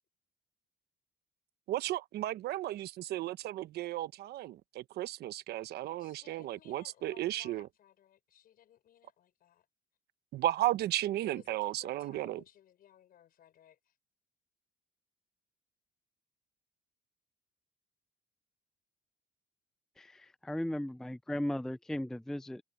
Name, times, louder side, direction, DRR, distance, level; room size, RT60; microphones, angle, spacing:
voice 1, 1.7-7.7 10.3-12.4, right 15 dB, 75° right, 1.0 m, -34 dB
voice 2, 6.0-9.7 11.2-14.0, left 11 dB, 60° left, 5.5 m, -59 dB
voice 3, 20.0-22.6, left 1 dB, 5° left, 0.4 m, -36 dB
cardioid pair, 110°, 17 cm